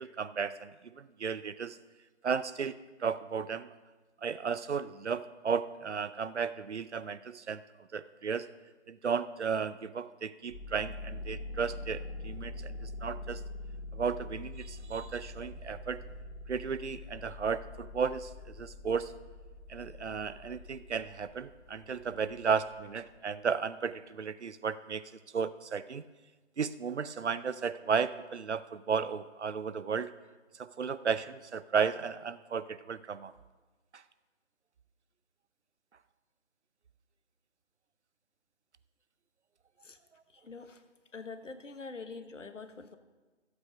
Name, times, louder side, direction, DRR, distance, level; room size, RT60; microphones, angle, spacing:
voice 1, 0.0-1.8 2.2-3.7 4.2-7.6 7.9-8.5 8.9-13.4 13.9-16.0 16.5-19.1 19.7-25.0 25.3-26.0 26.6-30.1 30.6-33.3 33.9-34.0, right 6 dB, 65° right, 15 dB, 0.6 m, -34 dB
sound 1, 10.4-23.1, left 2 dB, 15° right, 4.5 m, -44 dB
voice 2, 40.3-40.8 41.1-43.0, left 4 dB, 80° left, 10 dB, 1.3 m, -45 dB
14.0 x 8.3 x 5.1 m, 1.3 s
figure-of-eight pair, 170°, 37 cm